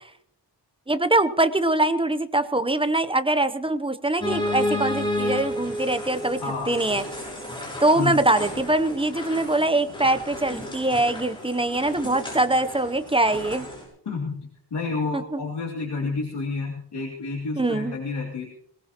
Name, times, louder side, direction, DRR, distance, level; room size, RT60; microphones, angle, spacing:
voice 1, 0.9-6.4 6.7-7.0 7.8-13.7 15.1-15.4 17.6-18.0, right 2 dB, 10° right, 11 dB, 0.7 m, -23 dB
sound 1, 4.2-13.8, left 1 dB, 10° left, 6.8 m, -32 dB
voice 2, 6.4-6.8 7.9-8.2 14.1-18.5, left 4 dB, 65° left, -2 dB, 2.8 m, -30 dB
21.5 x 18.5 x 2.9 m, 0.66 s
wide cardioid pair, 155°, 43 cm